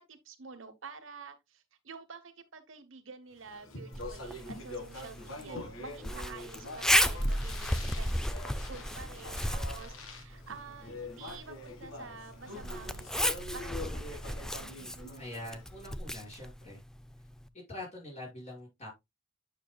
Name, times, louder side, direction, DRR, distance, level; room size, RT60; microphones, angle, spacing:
voice 1, 0.0-8.1 8.6-14.9, right 5 dB, 70° right, 1.1 m, -49 dB
Speech, 3.4-15.8, left 2 dB, 90° left, 1.7 m, -45 dB
Zipper (clothing), 3.9-17.5, equal, 5° left, 0.4 m, -35 dB
voice 2, 15.2-16.8 17.7-18.9, left 1 dB, 35° left, 5.6 m, -44 dB
9.2 x 6.4 x 2.3 m
head